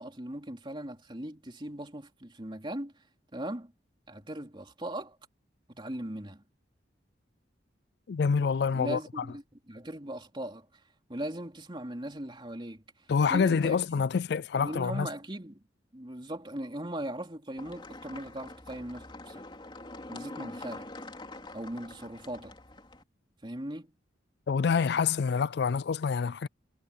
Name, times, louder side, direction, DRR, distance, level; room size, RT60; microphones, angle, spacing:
voice 1, 0.0-2.9 3.3-3.7 4.1-5.2 5.7-6.4 8.7-10.7 11.1-12.8 13.3-14.0 14.6-15.6 15.9-19.4 20.1-20.9 21.5-22.6 23.4-23.9, right 1 dB, 25° right, 3.3 m, -39 dB
voice 2, 8.1-9.2 13.1-15.1 24.5-26.5, left 5 dB, 60° left, 0.4 m, -27 dB
sound 1, 17.6-23.0, left 2 dB, 25° left, 3.6 m, -45 dB
head